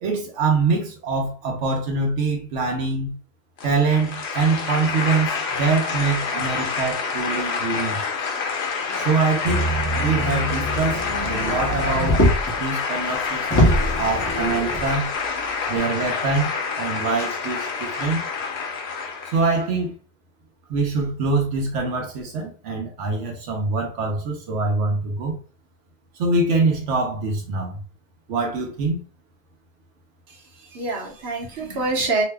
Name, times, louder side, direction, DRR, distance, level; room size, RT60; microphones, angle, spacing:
voice 1, 0.0-3.1 3.6-8.0 8.9-9.7 10.0-12.2 12.6-13.7 14.0-15.1 15.7-18.3 19.3-19.9 20.7-25.4 26.1-27.8 28.3-29.0, right 3 dB, 85° right, 1.0 m, -24 dB
sound 1, 3.6-19.6, left 5 dB, 70° left, 0.9 m, -27 dB
Motor vehicle (road), 9.4-12.6 13.1-13.2 13.5-14.9 15.8-15.9, equal, 20° left, 0.6 m, -23 dB
voice 2, 30.3-32.2, right 3 dB, 65° right, 1.1 m, -26 dB
2.9 x 2.1 x 3.3 m
omnidirectional pair, 1.2 m